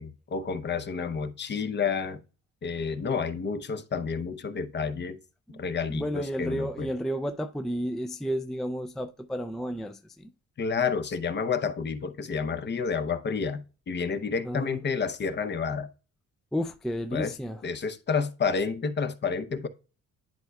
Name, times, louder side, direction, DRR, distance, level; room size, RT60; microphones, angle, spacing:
voice 1, 0.0-2.2 2.6-5.2 5.6-6.9 10.6-15.9 17.1-17.3 17.6-19.7, left 5 dB, 35° left, 0.7 m, -30 dB
voice 2, 5.9-10.3 14.4-14.8 16.5-17.6, equal, ahead, 0.3 m, -32 dB
10.5 x 4.7 x 2.3 m
cardioid pair, 120°, 30 cm